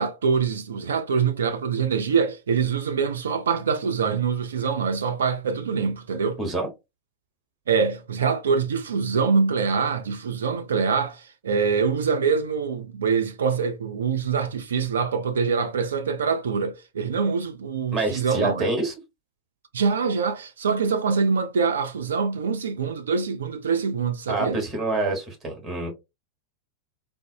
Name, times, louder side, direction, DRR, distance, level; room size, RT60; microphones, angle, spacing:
voice 1, 0.0-6.4 7.7-18.7 19.7-24.6, right 5 dB, 65° right, 0.4 m, -24 dB
voice 2, 17.9-18.9 24.3-25.9, right 2 dB, 15° right, 1.4 m, -26 dB
3.8 x 2.1 x 2.7 m
figure-of-eight pair, 90°, 0 cm